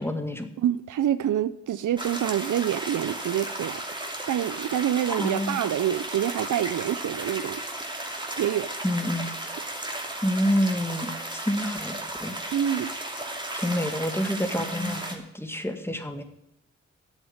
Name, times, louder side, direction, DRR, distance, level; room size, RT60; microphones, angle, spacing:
voice 1, 0.0-0.5 5.1-5.6 8.8-9.3 10.2-12.0 12.2-12.4 13.5-16.2, equal, 10° left, 2.0 m, -28 dB
voice 2, 0.6-3.8 4.3-7.6 8.4-8.7 12.5-12.9, right 11 dB, 80° right, 0.6 m, -26 dB
sound 1, 2.0-15.2, right 1 dB, 15° right, 2.7 m, -35 dB
10.5 x 8.1 x 8.8 m
cardioid pair, 50°, 30 cm